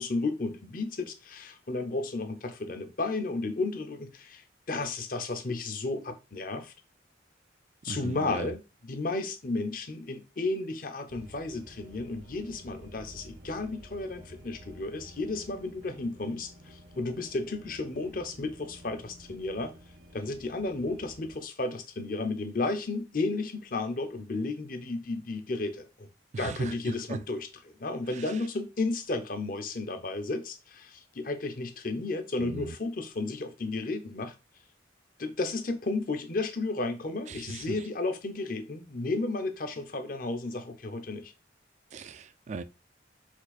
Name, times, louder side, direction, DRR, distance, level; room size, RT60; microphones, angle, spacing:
voice 1, 0.0-6.7 7.8-19.7 20.1-26.1 26.4-34.3 35.2-41.3, left 3 dB, 45° left, 0.7 m, -33 dB
voice 2, 7.9-8.5 26.3-27.2 28.1-28.2 32.4-32.7 37.3-37.6 41.9-42.6, right 4 dB, 35° right, 0.3 m, -38 dB
sound 1, 11.1-21.4, equal, 85° right, 0.9 m, -51 dB
4.5 x 2.5 x 4.1 m
head